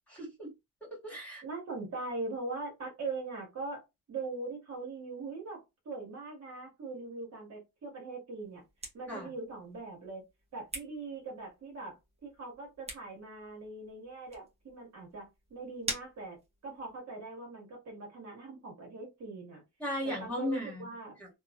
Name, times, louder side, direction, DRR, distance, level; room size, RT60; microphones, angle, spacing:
voice 1, 0.1-0.5 1.0-1.4 9.1-9.3 19.8-20.9 21.2-21.3, left 1 dB, 5° left, -6 dB, 1.8 m, -36 dB
voice 2, 1.4-3.8 4.1-8.6 8.9-10.2 10.5-11.9 12.2-15.2 15.5-16.4 16.6-19.6 20.2-21.2, right 3 dB, 55° right, 0 dB, 1.6 m, -41 dB
sound 1, 8.4-17.0, right 2 dB, 20° right, 1.0 m, -47 dB
2.9 x 2.7 x 2.4 m, 0.22 s
cardioid pair, 165°, 31 cm